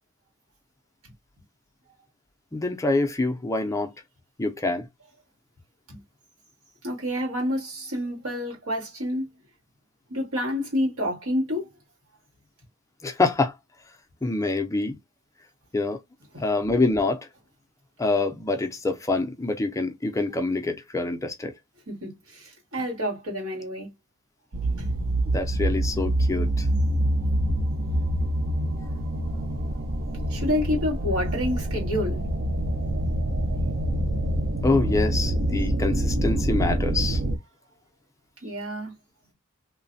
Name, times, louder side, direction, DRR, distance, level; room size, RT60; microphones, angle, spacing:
voice 1, 2.5-3.9 4.4-4.9 13.0-13.5 14.2-15.0 15.7-16.0 16.4-17.3 18.0-21.5 25.3-26.7 30.2-30.3 34.6-37.2, left 3 dB, 15° left, 0.4 m, -26 dB
voice 2, 6.8-9.3 10.1-11.7 16.3-16.4 21.9-23.9 24.8-24.9 30.3-32.2 38.4-38.9, left 1 dB, 90° right, 1.8 m, -28 dB
sound 1, 24.5-37.4, right 1 dB, 50° right, 0.5 m, -26 dB
3.1 x 2.1 x 2.6 m
head